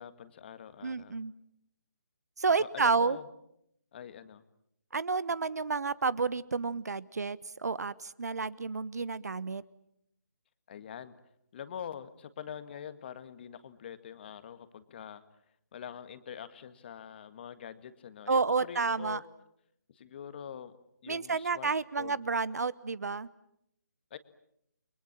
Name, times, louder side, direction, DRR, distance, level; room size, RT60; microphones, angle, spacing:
voice 1, 0.0-1.2 2.6-3.3 3.9-4.4 10.7-11.1 11.5-15.2 15.7-19.2 19.9-20.8 21.0-21.7 22.0-22.3 24.1-24.2, left 8 dB, 35° left, 11 dB, 1.8 m, -44 dB
voice 2, 0.8-1.3 2.4-3.2 4.9-9.6 18.3-19.2 21.1-23.3, right 4 dB, 60° right, 20 dB, 1.1 m, -30 dB
30.0 x 24.0 x 7.5 m, 0.76 s
figure-of-eight pair, 150°, 10 cm